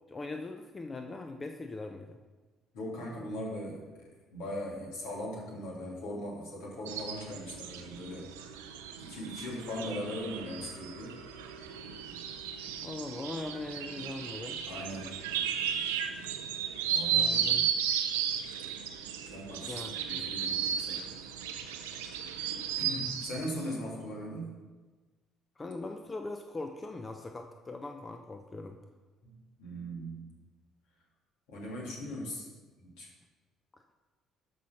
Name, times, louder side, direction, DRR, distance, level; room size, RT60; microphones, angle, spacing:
voice 1, 0.1-2.2 12.8-14.6 17.1-17.6 19.7-20.3 25.6-28.8, left 2 dB, 30° left, 5 dB, 0.8 m, -40 dB
voice 2, 2.7-8.4 9.0-11.1 14.7-15.3 16.9-17.7 19.2-21.3 22.8-24.5 29.2-30.3 31.5-32.5 32.8-33.1, equal, 75° left, -4 dB, 2.8 m, -40 dB
sound 1, 6.9-23.5, right 8 dB, 80° right, 0.7 m, -34 dB
12.5 x 4.3 x 5.8 m, 1.3 s
hypercardioid pair, 50°, 0 cm